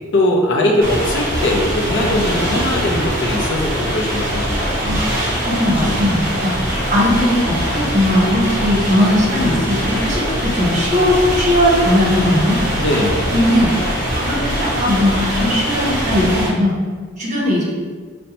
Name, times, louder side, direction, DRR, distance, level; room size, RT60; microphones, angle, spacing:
voice 1, 0.1-5.0 5.8-6.0 12.8-13.3, left 1 dB, 60° left, 0 dB, 0.5 m, -20 dB
sound 1, 0.8-16.5, equal, 15° right, 1.1 m, -22 dB
voice 2, 4.8-5.1 5.4-6.6 6.9-12.6 13.3-13.7 14.2-16.8 17.2-17.7, left 1 dB, 35° right, -4 dB, 0.9 m, -18 dB
5.3 x 2.1 x 2.9 m, 1.5 s
head